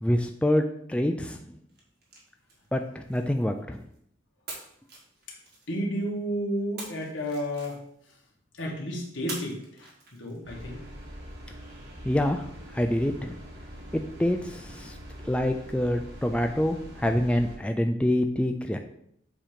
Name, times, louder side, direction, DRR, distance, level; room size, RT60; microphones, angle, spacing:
voice 1, 0.0-1.4 2.7-3.8 12.1-12.5 12.7-13.4 13.9-14.9 15.2-18.8, left 1 dB, 5° left, 5 dB, 0.3 m, -26 dB
sound 1, 1.7-4.0 4.5-6.0 6.8-8.2 9.3-10.6, right 3 dB, 55° right, 1.7 m, -45 dB
voice 2, 5.7-7.8 8.1-8.2 8.5-10.9, equal, 75° left, -2 dB, 1.7 m, -32 dB
sound 2, 10.4-17.6, equal, 85° right, 2.8 m, -44 dB
7.3 x 3.0 x 5.0 m, 0.70 s
head